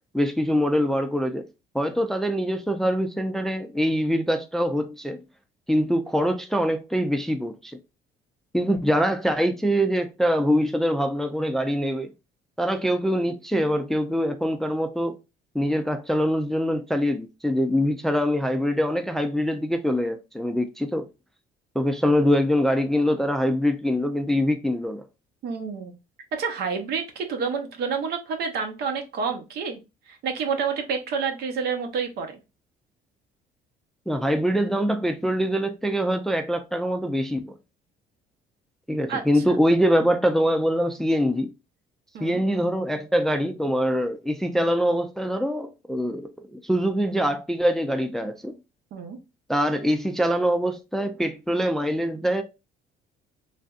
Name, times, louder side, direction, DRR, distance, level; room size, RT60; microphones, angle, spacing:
voice 1, 0.1-1.5 1.7-5.2 5.7-7.8 8.5-12.1 12.6-15.2 15.5-21.1 21.8-25.0 34.1-37.5 38.9-41.5 42.2-48.5 49.5-52.4, equal, ahead, 0.3 m, -24 dB
voice 2, 25.4-25.9 26.3-29.8 30.1-32.4 39.1-39.4 42.1-42.4 48.9-49.2, right 5 dB, 75° right, 0.8 m, -29 dB
3.3 x 2.6 x 2.3 m
cardioid pair, 110°, 17 cm